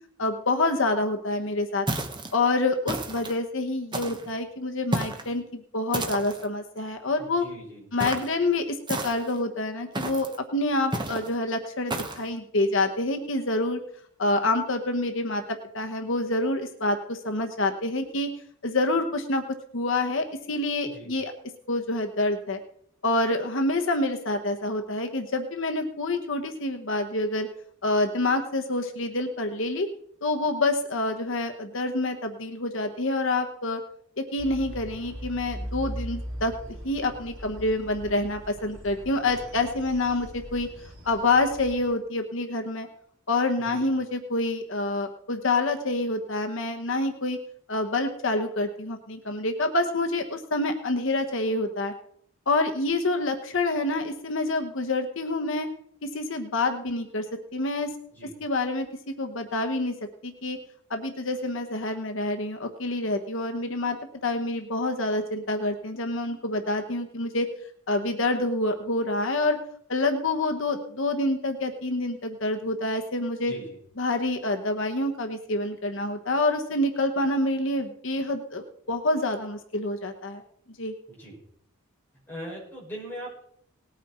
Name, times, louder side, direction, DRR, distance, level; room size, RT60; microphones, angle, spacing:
voice 1, 0.2-1.9 2.3-7.4 7.9-13.8 14.2-15.4 15.7-18.3 18.6-19.4 19.7-21.3 21.7-22.6 23.0-27.5 27.8-29.9 30.2-33.8 34.2-36.5 36.8-40.7 41.0-42.9 43.3-47.4 47.7-51.9 52.5-55.7 56.0-57.3 57.5-57.9 58.4-59.9 60.2-60.6 60.9-64.0 64.2-67.5 67.9-69.6 69.9-73.5 74.0-80.4 80.8-80.9, left 2 dB, 60° left, 5 dB, 1.1 m, -27 dB
sound 1, 1.9-2.3 2.9-3.4 3.9-4.3 4.9-5.3 5.9-6.5 8.0-8.3 8.9-9.4 9.9-10.4 10.9-11.3 11.9-12.2, right 2 dB, 20° right, 1.2 m, -31 dB
voice 2, 7.2-7.9 20.9-21.1 43.6-43.9 58.1-58.3 73.5-73.8 81.1-81.4 82.3-83.4, right 1 dB, 10° left, -5 dB, 6.0 m, -40 dB
sound 2, 34.4-41.8, equal, 55° right, 4.5 m, -39 dB
19.0 x 9.2 x 4.4 m, 0.67 s
head